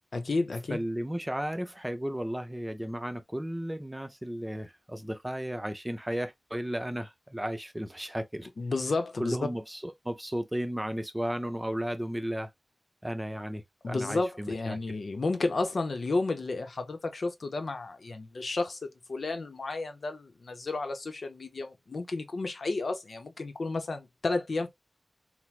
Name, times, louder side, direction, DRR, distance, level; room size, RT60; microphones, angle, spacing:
voice 1, 0.1-0.8 8.6-9.4 13.8-24.7, left 3 dB, 85° left, 0.6 m, -32 dB
voice 2, 0.7-8.5 9.2-12.5 13.0-14.8, equal, 15° right, 0.5 m, -34 dB
4.4 x 2.0 x 2.3 m
wide cardioid pair, 65°, 0 cm